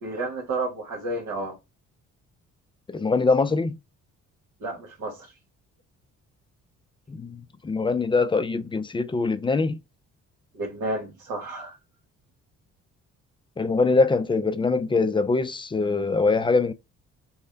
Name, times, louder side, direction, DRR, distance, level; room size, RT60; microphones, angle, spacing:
voice 1, 0.0-1.6 4.6-5.3 10.5-11.8, right 2 dB, 75° right, 1.2 m, -31 dB
voice 2, 2.9-3.8 7.1-9.8 13.6-16.7, left 3 dB, 15° left, 0.3 m, -23 dB
3.2 x 2.1 x 3.8 m
cardioid pair, 90°, 30 cm